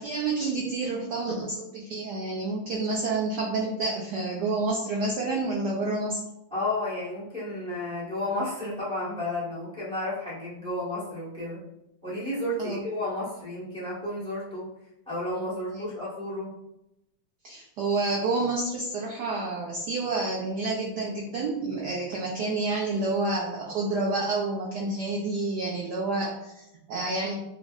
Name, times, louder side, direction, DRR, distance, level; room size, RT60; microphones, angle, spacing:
voice 1, 0.0-6.2 12.6-12.8 15.7-15.9 17.4-27.4, right 3 dB, 85° right, -3 dB, 0.9 m, -29 dB
voice 2, 6.5-11.6 12.0-14.7 15.1-16.5, left 1 dB, 5° left, -9 dB, 0.8 m, -32 dB
5.0 x 2.0 x 2.4 m, 0.85 s
omnidirectional pair, 2.4 m